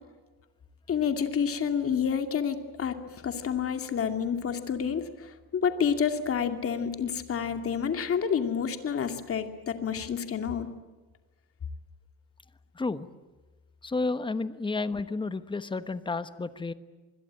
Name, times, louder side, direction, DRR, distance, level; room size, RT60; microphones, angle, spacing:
voice 1, 0.9-3.0 3.2-10.7, left 7 dB, 35° left, 7 dB, 2.5 m, -29 dB
voice 2, 12.7-13.1 13.8-16.7, left 3 dB, 10° left, 12 dB, 1.1 m, -31 dB
26.5 x 21.5 x 9.0 m, 1.3 s
cardioid pair, 135°, 40 cm